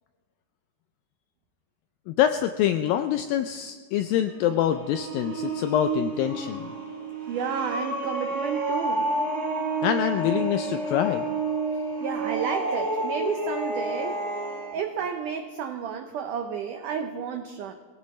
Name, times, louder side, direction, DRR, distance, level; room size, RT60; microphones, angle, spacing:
voice 1, 2.1-6.7 9.8-11.3, left 10 dB, 85° left, 8 dB, 2.0 m, -25 dB
sound 1, 4.2-14.7, right 2 dB, 35° right, 3.5 m, -30 dB
voice 2, 7.3-9.1 12.0-14.2 14.7-17.7, right 7 dB, 85° right, 5 dB, 1.8 m, -31 dB
22.5 x 16.5 x 3.2 m, 1.5 s
omnidirectional pair, 4.6 m